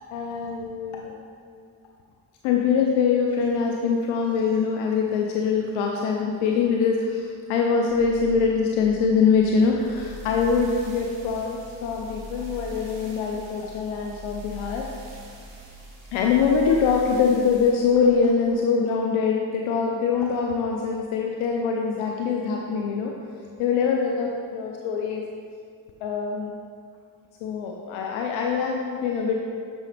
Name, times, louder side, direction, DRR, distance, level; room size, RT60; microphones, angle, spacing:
voice 1, 0.1-1.2 2.4-14.9 16.1-23.1 23.6-25.2 26.0-26.5 27.4-29.4, left 5 dB, 75° left, 1 dB, 0.7 m, -23 dB
sound 1, 7.9-17.7, right 1 dB, 80° right, 1.3 m, -42 dB
9.0 x 5.1 x 3.3 m, 2.2 s
hypercardioid pair, 45°, 48 cm